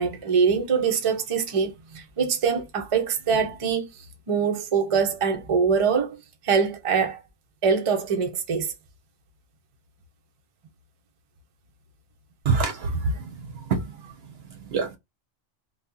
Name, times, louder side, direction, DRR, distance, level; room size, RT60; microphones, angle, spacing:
voice 1, 0.0-3.9 4.3-7.2 7.6-8.7, right 6 dB, 40° right, 0.5 m, -24 dB
voice 2, 12.4-14.1 14.5-15.0, right 4 dB, 60° right, 0.8 m, -27 dB
2.7 x 2.3 x 3.6 m
omnidirectional pair, 1.3 m